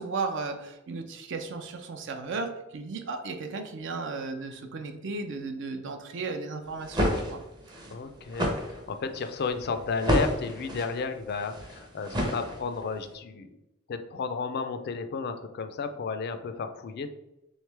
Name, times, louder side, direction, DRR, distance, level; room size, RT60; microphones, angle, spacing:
voice 1, 0.0-7.4, right 4 dB, 60° right, 6 dB, 0.5 m, -35 dB
sound 1, 6.7-12.9, equal, 20° right, 0.6 m, -30 dB
voice 2, 7.9-13.5 13.9-17.1, left 5 dB, 50° left, 9 dB, 0.4 m, -33 dB
3.5 x 3.2 x 3.3 m, 0.91 s
head